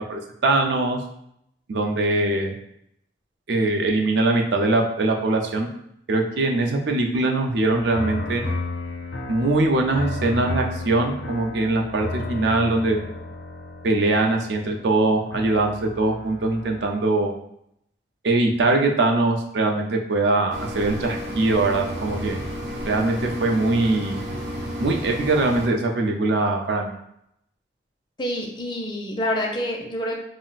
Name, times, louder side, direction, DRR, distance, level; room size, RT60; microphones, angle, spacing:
voice 1, 0.1-1.0 1.7-2.5 3.5-5.7 6.1-8.4 9.3-13.0 13.8-17.3 18.2-22.4 22.9-24.2 24.8-27.0, right 2 dB, 70° right, 3 dB, 0.4 m, -22 dB
sound 1, 7.7-16.9, left 2 dB, 80° left, 0.5 m, -33 dB
sound 2, 20.5-25.7, equal, 90° right, 0.8 m, -32 dB
voice 2, 28.2-30.2, equal, 25° left, -1 dB, 0.4 m, -27 dB
2.4 x 2.1 x 3.8 m, 0.75 s
head